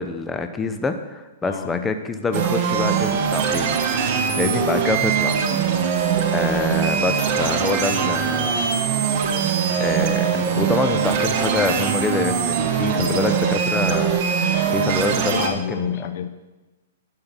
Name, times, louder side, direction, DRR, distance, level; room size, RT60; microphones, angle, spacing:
voice 1, 0.0-5.4 6.2-8.7 9.7-15.9, left 3 dB, 10° left, 8 dB, 0.7 m, -26 dB
voice 2, 1.4-1.9 4.3-4.8 12.9-13.6 15.3-16.3, left 9 dB, 65° left, 11 dB, 0.7 m, -30 dB
sound 1, 2.3-15.5, right 7 dB, 50° right, 1.2 m, -22 dB
11.5 x 5.7 x 5.3 m, 1.1 s
hypercardioid pair, 130°, 0 cm